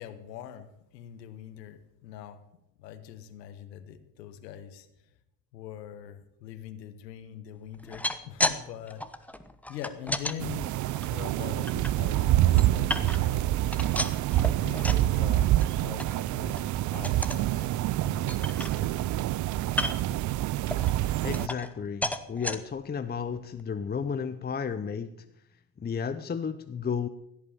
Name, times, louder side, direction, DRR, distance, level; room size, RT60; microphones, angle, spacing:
voice 1, 0.0-2.4 2.8-4.9 5.5-9.0 9.7-10.8 11.0-13.5 14.6-15.4 15.7-17.7 18.0-19.1, left 10 dB, 80° left, 11 dB, 1.3 m, -43 dB
sound 1, 7.7-8.6 8.9-10.4 10.9-11.9 12.4-13.4 13.7-15.1 15.4-15.7 16.0-16.1 16.5-16.7 17.0-17.4 17.9-18.0 18.3-19.1 19.7-20.2 20.7-21.8 22.0-22.6 23.2-23.3 23.6-23.7, left 1 dB, 5° left, 1.1 m, -33 dB
sound 2, 10.4-21.5, right 14 dB, 40° right, 0.5 m, -26 dB
voice 2, 21.2-25.1 25.8-27.1, left 6 dB, 20° left, 10 dB, 0.7 m, -33 dB
16.0 x 8.7 x 7.1 m, 0.81 s
hypercardioid pair, 70°, 49 cm